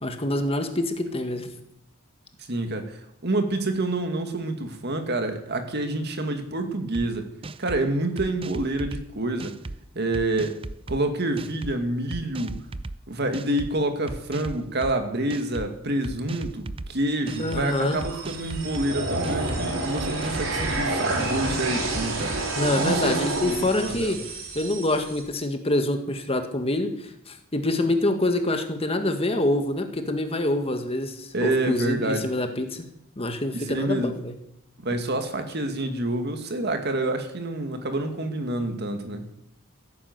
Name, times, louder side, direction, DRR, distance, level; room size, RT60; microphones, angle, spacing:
voice 1, 0.0-1.5 17.4-18.0 22.5-24.2 24.5-32.8 33.2-34.3, left 1 dB, 30° left, 6 dB, 1.7 m, -26 dB
voice 2, 2.5-7.3 7.6-9.6 9.9-10.6 10.9-12.6 13.1-22.4 22.7-24.2 31.3-32.3 33.5-34.1 34.8-39.3, right 1 dB, 50° right, 6 dB, 2.0 m, -28 dB
sound 1, 6.9-7.1 7.4-7.8 8.2-9.0 9.4-9.8 10.1-11.0 11.4-11.7 12.1-13.0 13.3-13.7 14.1-14.9 15.3-15.7 16.0-16.9 17.3-17.6 18.0-18.9 19.2-19.6 20.0-20.8 21.2-21.6 21.9-22.5, right 2 dB, 25° right, 0.5 m, -36 dB
sound 2, 17.3-25.2, right 2 dB, 70° right, 3.8 m, -29 dB
16.0 x 9.8 x 8.0 m, 0.75 s
head